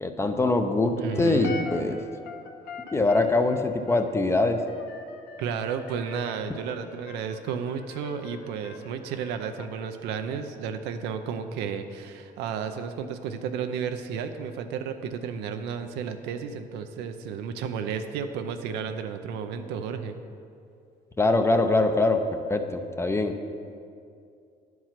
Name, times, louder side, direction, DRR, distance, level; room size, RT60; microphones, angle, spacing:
voice 1, 0.0-2.0 2.9-4.6 21.2-23.4, left 2 dB, 15° left, 7 dB, 0.6 m, -23 dB
voice 2, 0.9-1.7 5.4-20.2, right 7 dB, 90° right, 7 dB, 0.6 m, -32 dB
sound 1, 1.1-9.7, left 5 dB, 70° left, 0.9 m, -42 dB
10.5 x 4.7 x 5.8 m, 2.5 s
cardioid pair, 110°, 17 cm